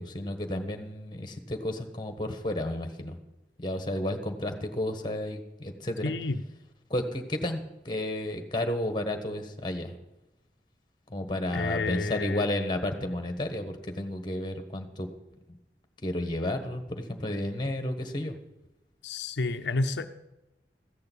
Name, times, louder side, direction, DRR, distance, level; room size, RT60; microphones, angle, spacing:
voice 1, 0.0-3.2 3.6-6.1 6.9-7.6 7.8-9.9 11.1-15.1 15.5-15.6 16.0-18.4, left 1 dB, 25° left, 6 dB, 1.3 m, -32 dB
voice 2, 6.0-6.4 11.5-12.4 19.0-20.1, left 3 dB, 80° left, 7 dB, 0.6 m, -30 dB
14.5 x 6.8 x 8.3 m, 0.95 s
head